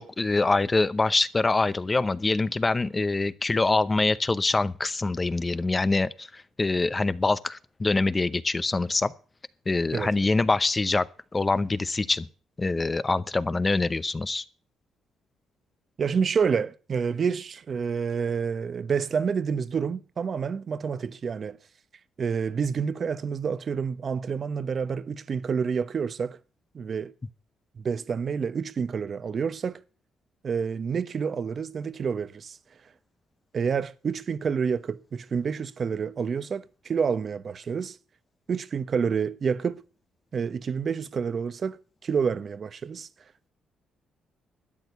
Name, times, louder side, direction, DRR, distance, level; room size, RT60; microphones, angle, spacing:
voice 1, 0.0-9.1 9.7-11.1 11.3-12.3 12.6-14.4, left 3 dB, 25° left, 0.8 m, -25 dB
voice 2, 16.0-21.6 22.2-26.4 26.7-27.1 27.8-29.8 30.4-32.6 33.5-38.0 38.5-39.8 40.3-43.1, right 6 dB, 45° right, 1.0 m, -28 dB
12.5 x 9.1 x 8.0 m
cardioid pair, 90°, 0 cm